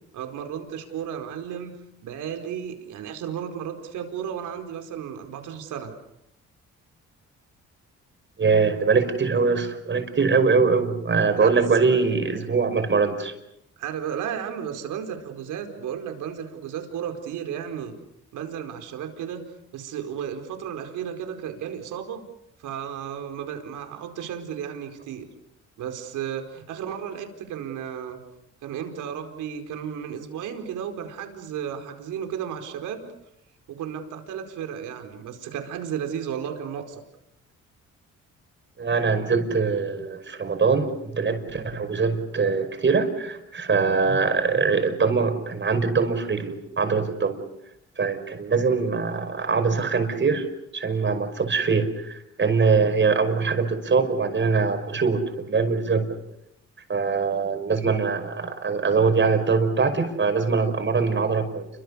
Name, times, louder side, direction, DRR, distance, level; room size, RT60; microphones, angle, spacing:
voice 1, 0.1-1.7 2.0-5.9 11.4-11.6 13.8-18.0 18.3-19.4 19.7-22.2 22.6-25.3 25.8-28.2 28.6-33.1 33.7-37.0, right 8 dB, 85° right, 5 dB, 4.7 m, -33 dB
voice 2, 8.4-13.3 38.8-47.4 48.0-50.5 50.7-56.2 56.9-61.7, right 4 dB, 40° right, 7 dB, 5.6 m, -23 dB
29.5 x 24.5 x 7.0 m, 0.81 s
cardioid pair, 90°, 30 cm